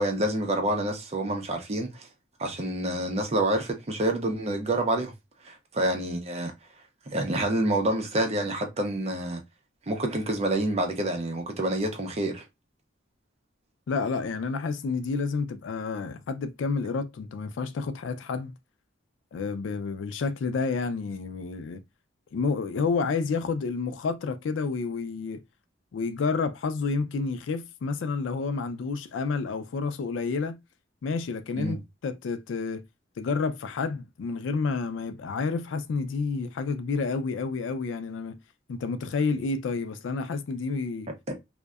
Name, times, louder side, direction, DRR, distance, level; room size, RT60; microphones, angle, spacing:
voice 1, 0.0-2.1 2.4-5.1 5.4-6.5 7.1-9.4 9.9-12.4 31.6-31.8, right 1 dB, 35° right, 0.5 m, -27 dB
voice 2, 13.9-18.5 19.3-21.8 22.3-25.4 25.9-30.6 31.0-32.8 33.2-38.4 38.7-41.1, left 4 dB, 80° left, 0.4 m, -30 dB
2.6 x 2.1 x 2.3 m
head